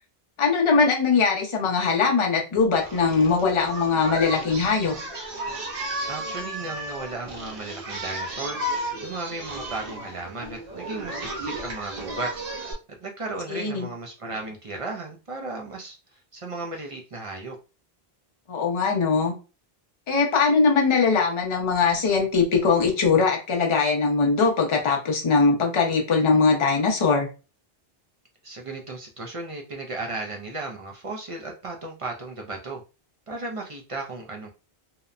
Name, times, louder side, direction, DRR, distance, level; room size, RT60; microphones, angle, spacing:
voice 1, 0.4-4.9 13.5-13.9 18.5-19.3 20.1-27.3, left 4 dB, 35° left, 0.6 m, -21 dB
Singing, 2.8-12.7, right 1 dB, 65° right, 0.9 m, -34 dB
voice 2, 6.1-8.6 9.0-16.0 16.3-17.6 28.4-32.8 33.3-34.5, right 2 dB, 45° right, 0.4 m, -35 dB
2.8 x 2.0 x 2.4 m
omnidirectional pair, 1.0 m